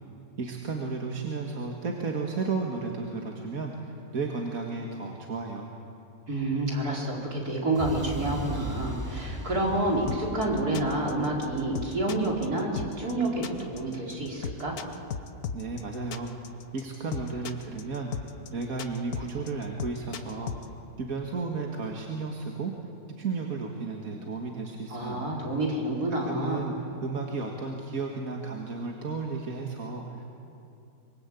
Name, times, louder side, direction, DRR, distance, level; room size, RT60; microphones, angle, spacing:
voice 1, 0.4-5.7 15.5-20.7 21.0-22.7 23.2-25.3 26.3-26.7 27.0-30.3, right 4 dB, 70° right, 1 dB, 2.2 m, -33 dB
voice 2, 6.3-14.8 24.9-26.7, right 2 dB, 85° right, -2 dB, 4.9 m, -29 dB
sound 1, 7.8-15.7, equal, 10° right, 2.3 m, -39 dB
sound 2, 10.1-20.7, left 7 dB, 80° left, 1.5 m, -36 dB
24.5 x 24.0 x 8.4 m, 2.7 s
omnidirectional pair, 1.6 m